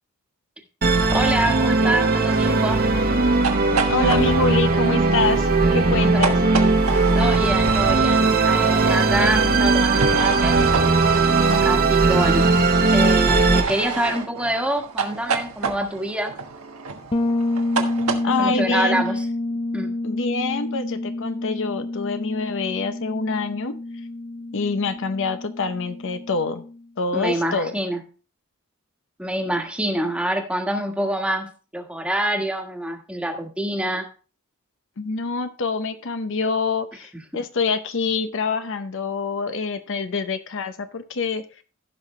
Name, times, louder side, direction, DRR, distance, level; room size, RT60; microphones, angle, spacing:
Musical instrument, 0.8-13.6, right 3 dB, 45° right, 1.2 m, -18 dB
voice 1, 1.1-2.8 6.1-6.2 7.1-10.6 11.6-12.5 12.9-16.3 18.2-19.2 19.7-19.9 27.1-28.0 29.2-34.1 37.3-37.4, right 1 dB, 5° right, 3 dB, 1.4 m, -26 dB
sound 1, 3.3-8.3 9.9-12.2 13.2-18.2, right 4 dB, 90° right, 1.3 m, -29 dB
voice 2, 3.9-6.4 18.2-19.1 20.0-23.7 24.5-26.6 27.0-27.7 35.0-41.4, left 4 dB, 60° left, 10 dB, 0.7 m, -26 dB
Bass guitar, 17.1-26.8, left 2 dB, 25° left, 0.5 m, -28 dB
15.5 x 5.8 x 3.2 m, 0.37 s
head